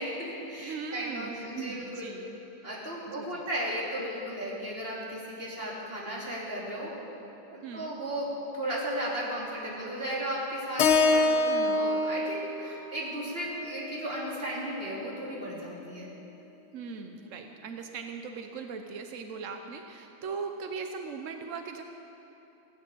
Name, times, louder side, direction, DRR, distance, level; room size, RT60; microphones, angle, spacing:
voice 1, 0.0-2.0 2.6-6.9 7.5-11.3 11.6-16.1, right 1 dB, 25° right, -5 dB, 3.1 m, -35 dB
voice 2, 0.6-2.4 3.2-3.4 7.6-7.9 11.4-11.8 16.7-21.8, right 5 dB, 70° right, 5 dB, 0.7 m, -39 dB
Keyboard (musical), 10.8-15.0, left 3 dB, 75° left, 1.7 m, -27 dB
17.5 x 9.3 x 8.4 m, 3.0 s
omnidirectional pair, 2.3 m